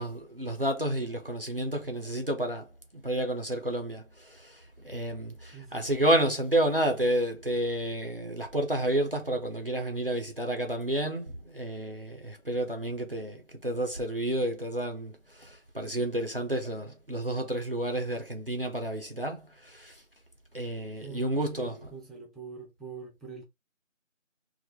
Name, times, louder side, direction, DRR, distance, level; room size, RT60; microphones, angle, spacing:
voice 1, 0.0-20.0 20.5-21.8, right 1 dB, 45° right, 0.5 m, -30 dB
voice 2, 5.5-6.4 21.0-23.4, right 5 dB, ahead, 0.5 m, -45 dB
2.3 x 2.1 x 3.6 m
figure-of-eight pair, 170°, 39 cm